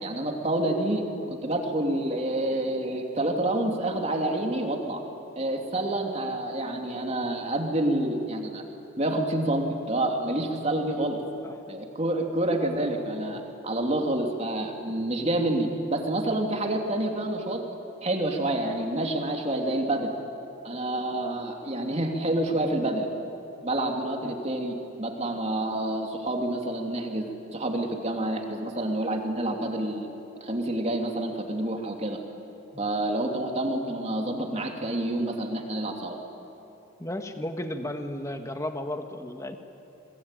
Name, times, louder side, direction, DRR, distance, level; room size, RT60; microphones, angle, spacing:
voice 1, 0.0-1.0 1.3-5.0 5.4-8.6 9.0-11.2 11.7-17.6 18.0-20.1 20.6-23.1 23.6-30.1 30.4-32.2 32.8-36.2, right 1 dB, 30° right, 2 dB, 2.7 m, -28 dB
voice 2, 11.4-11.8 24.2-24.3 32.7-32.8 37.0-39.6, left 1 dB, 15° left, 6 dB, 1.5 m, -34 dB
28.5 x 21.5 x 9.0 m, 2.9 s
head